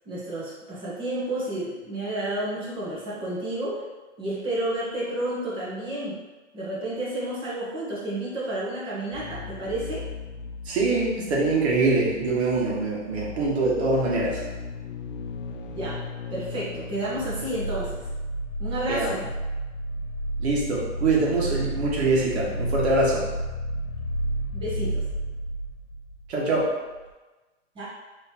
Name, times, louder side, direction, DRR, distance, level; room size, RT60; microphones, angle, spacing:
voice 1, 0.0-3.8 4.2-6.2 6.5-10.0 15.7-16.0 16.3-18.0 18.6-19.2 24.5-25.0 27.7-27.8, right 1 dB, 15° right, -7 dB, 1.0 m, -31 dB
sound 1, 9.1-26.7 26.9-27.0, equal, 85° left, 0.6 m, -33 dB
voice 2, 10.6-14.4 18.9-19.2 20.4-23.3 26.3-26.7, right 2 dB, 60° right, -4 dB, 1.3 m, -24 dB
4.1 x 3.1 x 2.8 m, 1.2 s
hypercardioid pair, 140°, 37 cm